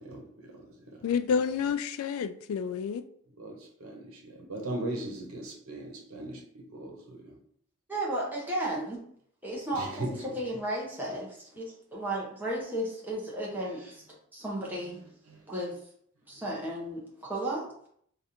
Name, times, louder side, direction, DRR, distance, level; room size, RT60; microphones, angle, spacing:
voice 1, 0.0-1.1 3.4-7.4 9.7-10.4 15.3-15.5, right 1 dB, 90° right, 1.0 m, -39 dB
voice 2, 1.0-3.0, left 6 dB, 80° left, 0.3 m, -29 dB
voice 3, 7.9-9.0 9.4-14.0 14.3-15.0 15.5-15.8 16.3-17.7, right 1 dB, 10° right, 0.9 m, -34 dB
3.4 x 2.5 x 4.2 m
head